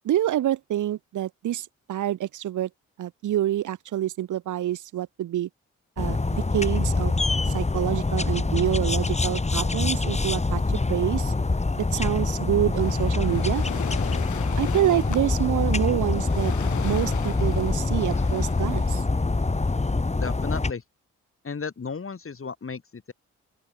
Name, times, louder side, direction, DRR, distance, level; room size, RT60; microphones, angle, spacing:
voice 1, 0.0-2.7 3.0-5.5 6.0-7.1 7.5-11.3 11.8-13.6 14.6-16.5 16.8-19.0, right 12 dB, 80° right, 1.8 m, -27 dB
sound 1, 6.0-20.7, left 3 dB, 20° left, 1.8 m, -25 dB
Waves surf, 12.7-19.0, left 10 dB, 80° left, 5.6 m, -38 dB
voice 2, 20.2-20.8 21.4-23.1, left 5 dB, 45° left, 6.0 m, -34 dB
open air
supercardioid pair, 55°, 30 cm